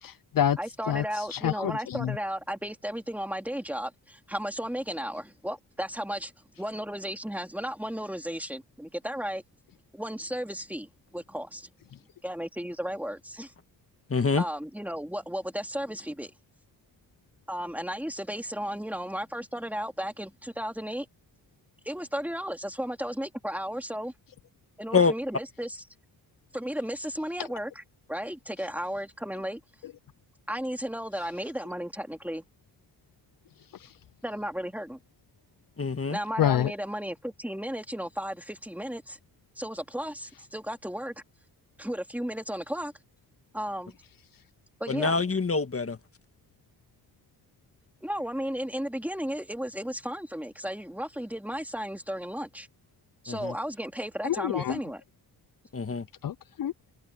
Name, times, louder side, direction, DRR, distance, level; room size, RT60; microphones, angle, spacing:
voice 1, 0.0-0.6 0.9-2.2 33.8-33.9 36.4-36.7 54.2-54.8 56.2-56.7, left 10 dB, 60° left, 0.6 m, -27 dB
voice 2, 0.6-6.3 6.6-9.4 9.9-11.7 12.2-13.5 14.4-16.3 17.5-21.1 21.8-24.1 24.8-25.8 26.5-27.8 28.1-29.6 30.5-32.4 34.2-35.0 36.1-39.2 39.6-41.1 41.8-42.9 43.5-44.0 44.8-45.2 48.0-52.7 53.2-55.0, equal, 5° right, 2.6 m, -34 dB
voice 3, 14.1-14.4 24.9-25.1 35.8-36.2 44.9-46.0 53.3-53.5 55.7-56.0, left 4 dB, 35° left, 1.8 m, -25 dB
wide cardioid pair, 105°, 38 cm